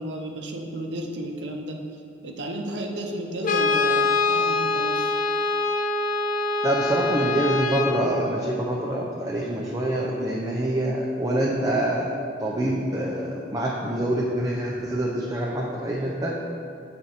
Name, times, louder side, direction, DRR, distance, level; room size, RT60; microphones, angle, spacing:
voice 1, 0.0-1.8 2.2-5.1, right 1 dB, 70° right, 2 dB, 0.6 m, -33 dB
Brass instrument, 3.4-8.0, left 3 dB, 50° left, 0.4 m, -24 dB
voice 2, 6.6-12.1 12.4-16.4, right 1 dB, 20° right, -4 dB, 0.5 m, -26 dB
7.7 x 4.3 x 3.9 m, 2.4 s
head